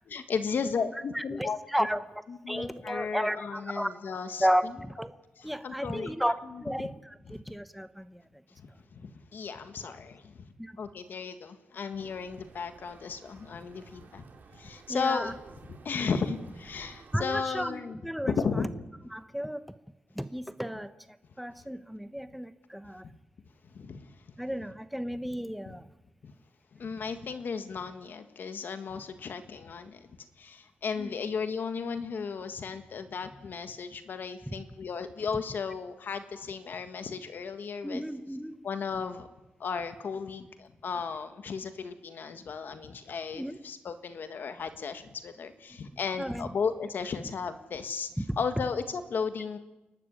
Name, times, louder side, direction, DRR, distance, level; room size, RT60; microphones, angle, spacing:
voice 1, 0.1-1.6 2.3-4.5 5.6-6.4 6.8-6.9 8.6-10.3 10.8-14.2 14.5-15.3 15.8-18.0 18.3-18.7 23.7-24.1 25.7-25.8 26.8-30.1 30.4-38.0 38.6-39.3 39.6-48.1 48.4-49.6, left 5 dB, 60° left, 9 dB, 1.6 m, -35 dB
voice 2, 1.1-3.9 4.4-5.2 5.4-6.3 6.6-8.2 10.6-10.8 14.9-15.3 17.1-18.7 19.1-19.6 20.1-20.9 21.4-23.0 24.4-25.9 31.0-31.2 34.5-34.6 37.8-38.5 43.3-43.6 46.2-46.5 48.2-48.4, equal, ahead, 12 dB, 0.9 m, -33 dB
sound 1, 12.0-17.2, right 5 dB, 55° right, 2.8 m, -54 dB
28.5 x 12.5 x 9.9 m, 1.0 s
wide cardioid pair, 145°, 4 cm